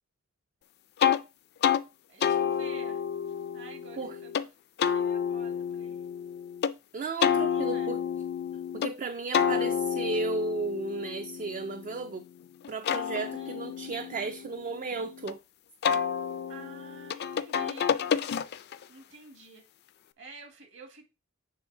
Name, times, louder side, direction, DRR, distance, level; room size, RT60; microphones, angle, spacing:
sound 1, 1.0-1.2 1.6-1.8 2.2-4.5 4.8-6.7 7.2-8.9 9.3-12.2 12.6-15.3 15.8-18.8, left 7 dB, 50° left, 0.4 m, -29 dB
voice 1, 2.1-3.0 3.5-4.5 4.9-6.0 7.3-7.9 13.1-13.6 16.5-18.0 18.4-19.6 20.2-21.1, right 3 dB, 65° right, 1.8 m, -50 dB
voice 2, 6.9-8.0 8.7-12.3 12.7-15.4, right 3 dB, 40° right, 0.3 m, -34 dB
8.7 x 3.3 x 3.8 m
head